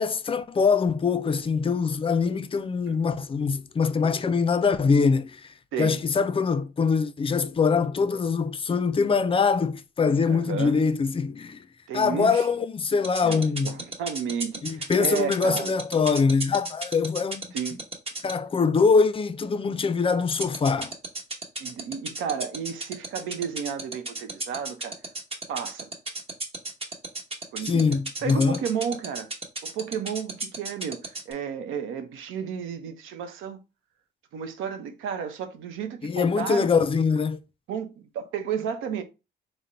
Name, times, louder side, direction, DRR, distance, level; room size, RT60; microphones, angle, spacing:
voice 1, 0.0-5.5 5.8-11.6 11.9-13.8 14.6-17.5 18.2-20.9 27.6-28.6 36.0-37.4, left 5 dB, 25° left, 0.4 m, -23 dB
voice 2, 10.0-10.8 11.9-12.5 13.2-15.7 17.5-17.8 21.6-25.0 25.5-25.9 27.5-27.8 28.2-29.3 29.6-33.6 34.3-36.7 37.7-39.0, right 7 dB, 90° right, 0.7 m, -32 dB
sound 1, 13.0-18.3 20.4-31.3, right 2 dB, 30° right, 1.1 m, -32 dB
3.7 x 2.1 x 4.1 m
cardioid pair, 90°, 20 cm